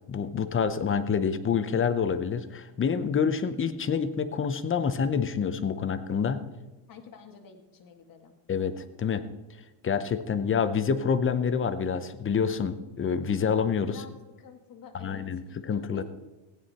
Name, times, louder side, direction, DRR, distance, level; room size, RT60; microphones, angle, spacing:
voice 1, 0.1-6.4 8.5-9.2 9.8-14.0 14.9-16.0, left 6 dB, 25° left, 12 dB, 0.8 m, -27 dB
voice 2, 6.9-8.3 13.9-14.1 14.4-15.2 15.9-16.0, left 6 dB, 45° left, 3 dB, 1.9 m, -47 dB
16.0 x 9.6 x 4.2 m, 1.2 s
cardioid pair, 120°, 49 cm